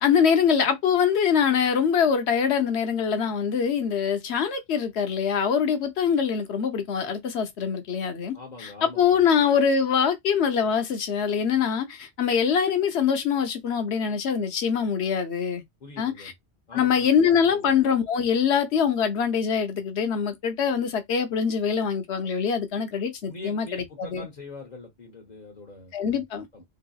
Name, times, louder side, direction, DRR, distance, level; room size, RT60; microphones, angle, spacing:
voice 1, 0.0-15.6 16.0-16.3 16.7-24.3 25.9-26.5, left 7 dB, 75° left, 1.0 m, -24 dB
voice 2, 8.3-9.2 15.8-16.3 16.7-17.1 17.5-17.7 23.3-25.9 26.5-26.6, left 3 dB, 45° left, 1.0 m, -42 dB
3.8 x 2.7 x 2.3 m
omnidirectional pair, 1.1 m